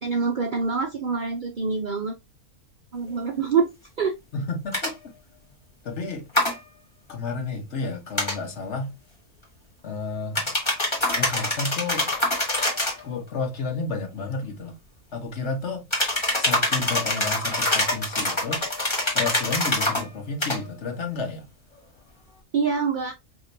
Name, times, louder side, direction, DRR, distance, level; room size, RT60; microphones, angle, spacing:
voice 1, 0.0-2.2 2.9-3.7 4.0-4.1 22.5-23.1, right 5 dB, 55° right, 0.5 m, -25 dB
voice 2, 4.3-4.9 5.8-6.3 7.1-8.9 9.8-10.5 11.1-12.1 13.0-14.8 15.1-15.8 16.4-18.6 19.1-21.5, left 3 dB, 55° left, 1.2 m, -31 dB
sound 1, 4.7-4.9 6.3-6.5 8.2-8.4 10.4-13.0 15.9-20.0 20.4-20.6, left 1 dB, 20° left, 1.4 m, -25 dB
4.9 x 2.9 x 2.6 m
omnidirectional pair, 1.5 m